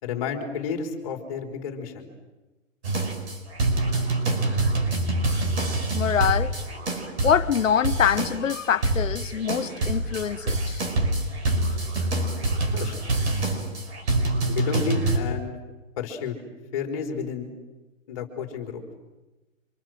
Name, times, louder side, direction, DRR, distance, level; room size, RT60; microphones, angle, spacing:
voice 1, 0.0-2.1 12.7-12.9 14.5-15.6 16.0-16.4 16.7-17.5 18.1-18.8, left 6 dB, 25° left, 3.9 m, -31 dB
sound 1, 2.8-15.2, right 2 dB, 55° right, 5.5 m, -26 dB
voice 2, 5.9-6.6 6.9-10.8, left 8 dB, 70° left, 1.4 m, -24 dB
28.5 x 26.5 x 7.8 m
hypercardioid pair, 175°, 40 cm